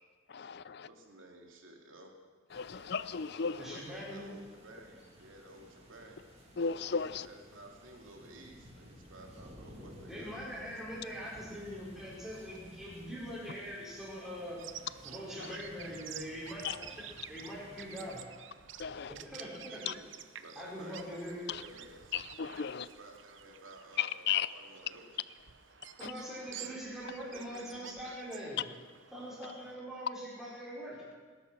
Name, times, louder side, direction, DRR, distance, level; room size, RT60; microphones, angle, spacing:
voice 1, 0.3-0.9 2.5-3.6 6.6-7.3 16.6-16.7 18.8-19.1 19.9-20.0 21.5-21.6 22.1-22.8 24.0-24.5 26.0-26.1, left 7 dB, 55° left, 0.5 m, -34 dB
voice 2, 0.8-2.2 3.5-6.2 7.2-10.4 19.4-20.1 20.4-22.2 22.5-25.2 26.4-27.9, right 1 dB, 85° right, 2.5 m, -54 dB
sound 1, 2.5-18.2, equal, 30° right, 2.5 m, -55 dB
voice 3, 3.6-4.2 10.1-14.6 15.0-18.2 19.2-19.8 20.5-21.4 26.0-28.6 29.1-31.0, equal, ahead, 4.9 m, -43 dB
Bird vocalization bird call bird song, 14.6-29.7, right 10 dB, 70° right, 0.8 m, -51 dB
19.5 x 11.0 x 6.1 m
head